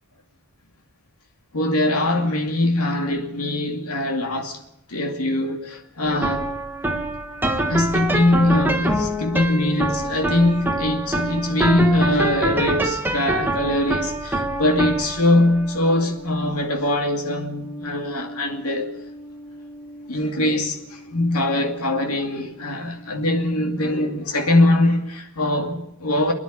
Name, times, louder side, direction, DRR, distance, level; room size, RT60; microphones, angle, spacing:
voice 1, 1.5-4.6 4.9-6.5 7.7-18.9 20.1-26.3, left 1 dB, 85° left, 2.5 m, -22 dB
sound 1, 6.1-23.3, right 1 dB, 10° right, 1.5 m, -27 dB
29.0 x 10.5 x 8.7 m
head